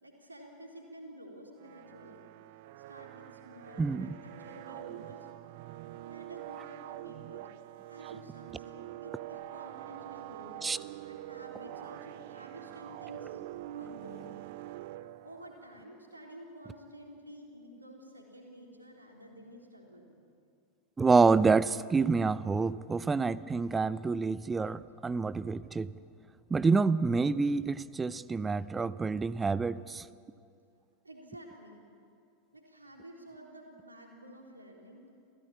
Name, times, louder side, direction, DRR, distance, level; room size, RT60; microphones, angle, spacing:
voice 1, 0.0-2.3 2.9-5.3 6.0-7.5 7.9-10.7 11.1-13.4 13.7-14.3 15.2-20.1 31.0-31.9 32.5-35.0, right 1 dB, 80° right, 1 dB, 3.8 m, -50 dB
sound 1, 1.6-15.7, right 15 dB, 55° right, 0.6 m, -45 dB
voice 2, 3.8-4.1 10.6-10.8 21.0-25.9 26.5-30.1, right 4 dB, 15° right, 18 dB, 0.7 m, -27 dB
28.0 x 16.0 x 8.8 m, 2.4 s
figure-of-eight pair, 85°, 0 cm